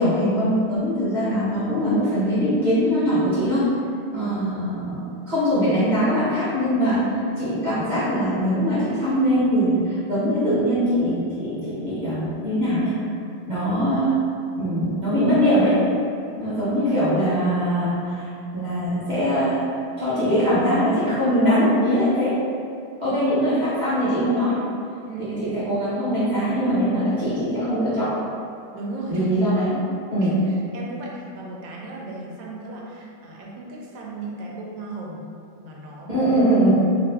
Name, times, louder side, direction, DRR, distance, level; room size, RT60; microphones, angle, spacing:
voice 1, 0.0-3.7 4.1-5.0 5.3-12.9 13.5-14.2 14.6-15.8 16.4-19.6 20.0-22.4 23.0-24.6 25.2-28.2 29.1-29.8 30.1-30.3 36.1-36.7, equal, 30° right, -12 dB, 0.9 m, -22 dB
voice 2, 23.0-23.4 25.1-25.7 28.7-29.3 30.2-35.2 35.6-36.3, right 2 dB, 85° right, -3 dB, 1.3 m, -35 dB
3.1 x 2.4 x 3.3 m, 2.4 s
omnidirectional pair, 2.0 m